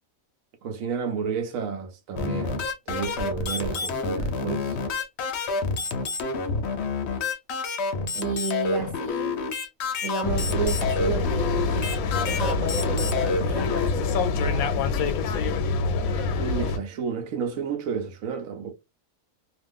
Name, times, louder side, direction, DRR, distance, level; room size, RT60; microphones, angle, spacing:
voice 1, 0.6-4.8 16.4-18.7, right 6 dB, 75° right, 1.0 m, -31 dB
sound 1, 2.1-13.9, left 4 dB, 60° left, 0.8 m, -29 dB
voice 2, 8.1-9.5 10.0-12.0 12.2-14.8, right 3 dB, 35° right, 1.0 m, -32 dB
sound 2, 10.2-16.8, left 4 dB, 85° left, 1.0 m, -26 dB
2.5 x 2.4 x 3.4 m
omnidirectional pair, 1.4 m